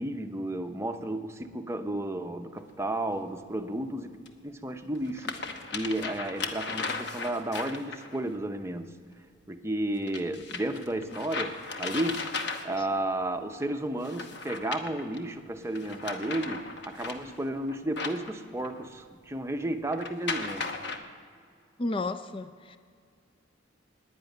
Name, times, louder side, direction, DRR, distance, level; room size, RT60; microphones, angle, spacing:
voice 1, 0.0-4.2 4.4-9.0 9.5-12.4 12.6-20.8, right 1 dB, 15° right, 6 dB, 0.7 m, -33 dB
sound 1, 2.6-2.7 4.3-4.4 5.0-8.2 10.1-13.0 14.0-15.2 15.7-18.9 19.9-21.0, left 4 dB, 60° left, 1.1 m, -36 dB
voice 2, 21.8-22.8, left 2 dB, 25° left, 10 dB, 0.4 m, -32 dB
10.5 x 10.0 x 9.3 m, 2.2 s
head